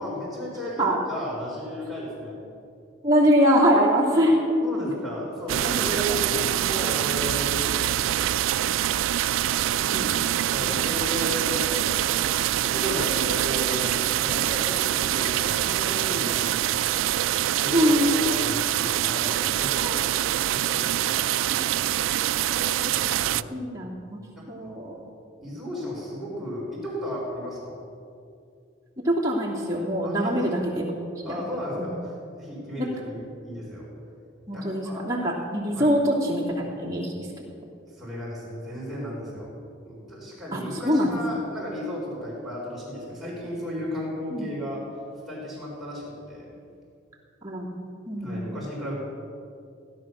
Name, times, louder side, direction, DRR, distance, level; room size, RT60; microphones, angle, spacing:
voice 1, 0.0-2.4 4.6-8.4 10.5-12.2 12.6-13.9 14.2-17.0 17.5-20.0 20.5-22.0 23.2-23.5 24.4-24.8 25.4-27.8 30.0-30.6 31.2-33.9 34.5-35.1 35.7-35.9 37.9-39.5 39.8-44.8 45.3-46.6 48.2-48.9, equal, ahead, -7 dB, 4.2 m, -34 dB
voice 2, 3.0-4.9 5.6-6.4 9.9-10.7 17.7-18.3 19.8-20.0 21.5-21.7 22.5-22.9 23.5-24.2 24.5-25.0 29.0-31.0 31.3-31.4 32.8-32.9 34.5-37.1 40.5-41.1 44.3-44.5 47.4-48.4, equal, 15° right, -4 dB, 2.7 m, -24 dB
sound 1, 5.5-23.4, right 12 dB, 85° right, 0.3 m, -25 dB
16.0 x 10.5 x 6.4 m, 2.5 s
head